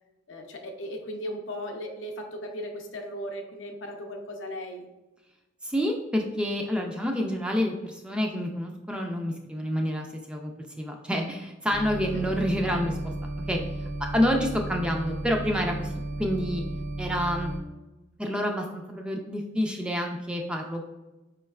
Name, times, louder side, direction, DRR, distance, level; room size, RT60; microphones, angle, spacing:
voice 1, 0.3-4.9 12.1-12.4, equal, 70° left, 3 dB, 0.6 m, -37 dB
voice 2, 5.6-10.5 10.8-13.0 13.5-13.6 14.1-15.9 16.2-16.6 17.0-17.5 18.2-20.9, equal, 5° right, 2 dB, 0.3 m, -28 dB
sound 1, 11.7-17.6, right 1 dB, 75° right, 0.4 m, -34 dB
4.7 x 3.1 x 2.3 m, 1.0 s
head